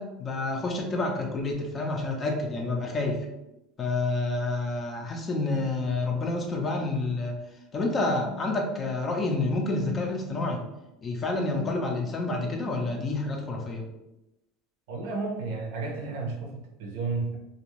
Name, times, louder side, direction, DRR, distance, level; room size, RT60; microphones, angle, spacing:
voice 1, 0.0-3.3 3.8-7.4 7.7-10.6 11.0-13.9, left 2 dB, 25° left, 2 dB, 0.5 m, -29 dB
voice 2, 14.9-17.4, right 3 dB, 80° right, 2 dB, 0.7 m, -32 dB
2.5 x 2.3 x 3.1 m, 0.93 s
supercardioid pair, 130°, 0 cm